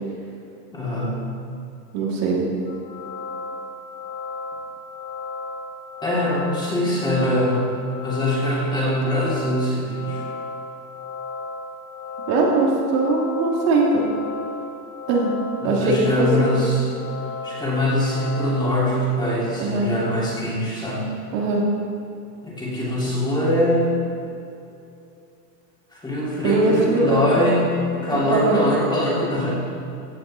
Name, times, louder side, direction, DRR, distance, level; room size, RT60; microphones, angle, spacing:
voice 1, 0.7-1.2 6.0-7.6 8.0-10.2 15.6-16.8 17.4-21.1 22.4-24.0 25.9-29.5, left 1 dB, 10° left, -6 dB, 2.8 m, -23 dB
voice 2, 1.9-2.5 12.3-14.0 15.1-15.3 15.6-16.5 19.6-19.9 21.3-21.6 26.4-27.2 28.3-28.6, right 3 dB, 55° right, -3 dB, 3.0 m, -20 dB
sound 1, 2.7-18.7, left 3 dB, 50° left, 3.0 m, -35 dB
15.5 x 9.0 x 4.3 m, 2.6 s
supercardioid pair, 145°, 50 cm